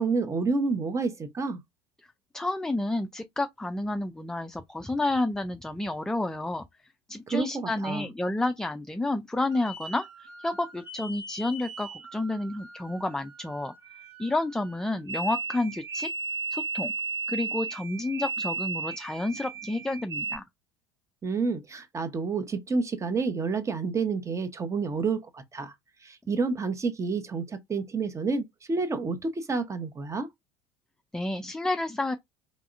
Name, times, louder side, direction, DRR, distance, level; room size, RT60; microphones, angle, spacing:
voice 1, 0.0-1.6 7.3-8.1 21.2-25.7 26.0-30.3, right 4 dB, 25° right, 0.9 m, -29 dB
voice 2, 2.3-6.6 7.1-13.7 14.2-16.1 16.5-16.9 17.3-20.4 31.1-32.2, left 2 dB, 5° left, 0.4 m, -30 dB
sound 1, 9.5-20.4, right 4 dB, 70° right, 1.5 m, -36 dB
4.7 x 3.2 x 2.5 m
figure-of-eight pair, 65°, 13 cm